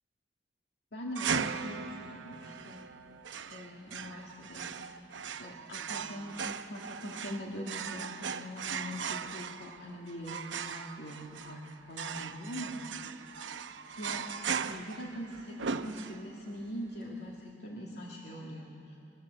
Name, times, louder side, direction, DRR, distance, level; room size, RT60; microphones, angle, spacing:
voice 1, 0.9-2.9 3.5-5.0 5.4-13.0 14.0-14.3 14.7-19.0, equal, 65° left, -3 dB, 2.3 m, -42 dB
sound 1, 1.1-16.5, right 6 dB, 85° right, 0.8 m, -38 dB
23.5 x 21.5 x 7.6 m, 2.5 s
head